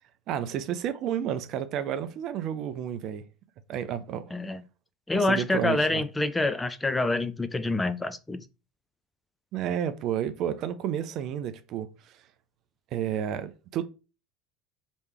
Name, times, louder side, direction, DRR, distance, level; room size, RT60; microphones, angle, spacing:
voice 1, 0.3-3.2 3.7-4.3 5.1-6.0 9.5-11.9 12.9-13.8, right 9 dB, 45° right, 0.5 m, -31 dB
voice 2, 5.1-8.4, left 2 dB, 10° left, 0.4 m, -27 dB
3.2 x 3.1 x 4.4 m
figure-of-eight pair, 70°, 0 cm